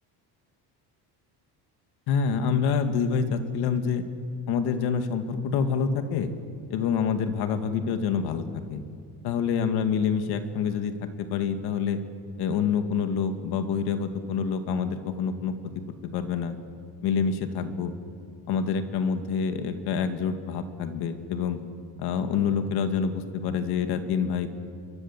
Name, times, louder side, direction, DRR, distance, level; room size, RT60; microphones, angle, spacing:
voice 1, 2.1-4.0 4.5-6.3 6.7-8.8 9.2-10.9 11.2-12.0 12.4-15.5 16.0-16.6 17.0-17.9 18.5-21.6 22.0-24.5, left 6 dB, 70° left, 8 dB, 2.2 m, -27 dB
27.0 x 23.0 x 7.4 m, 2.3 s
cardioid pair, 170°, 40 cm